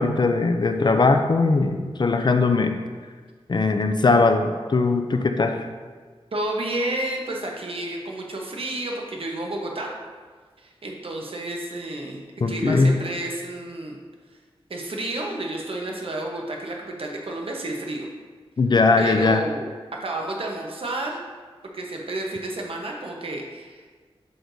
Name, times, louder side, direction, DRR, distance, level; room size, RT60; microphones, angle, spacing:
voice 1, 0.0-2.7 3.5-5.7 12.4-12.9 18.6-19.4, left 3 dB, 45° left, 6 dB, 0.5 m, -20 dB
voice 2, 6.3-9.9 10.6-12.2 12.5-14.0 14.7-18.1 19.0-21.2 21.7-23.9, right 1 dB, 60° right, 0 dB, 1.0 m, -31 dB
7.7 x 6.5 x 2.7 m, 1.5 s
wide cardioid pair, 105°, 10 cm